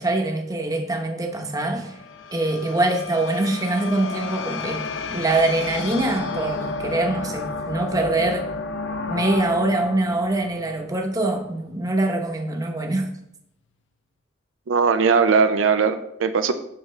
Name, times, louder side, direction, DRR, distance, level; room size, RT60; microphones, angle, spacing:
voice 1, 0.0-2.0 2.3-4.8 5.1-8.5 9.1-13.1, right 2 dB, 20° right, 3 dB, 0.9 m, -24 dB
sound 1, 1.3-11.6, left 3 dB, 70° left, 0.7 m, -32 dB
voice 2, 14.7-16.5, right 5 dB, 85° right, 9 dB, 0.5 m, -19 dB
7.8 x 5.9 x 3.2 m, 0.77 s
head